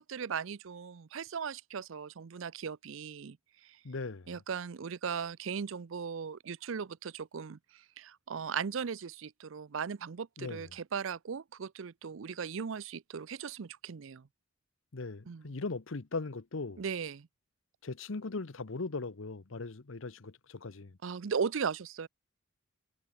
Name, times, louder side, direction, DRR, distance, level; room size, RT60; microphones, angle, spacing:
voice 1, 0.0-3.4 3.6-3.8 4.3-14.3 15.3-15.4 16.8-17.3 21.0-22.1, right 6 dB, 70° right, 0.5 m, -38 dB
voice 2, 3.8-4.3 10.4-10.7 14.9-16.8 17.8-21.0, left 3 dB, 70° left, 0.9 m, -39 dB
head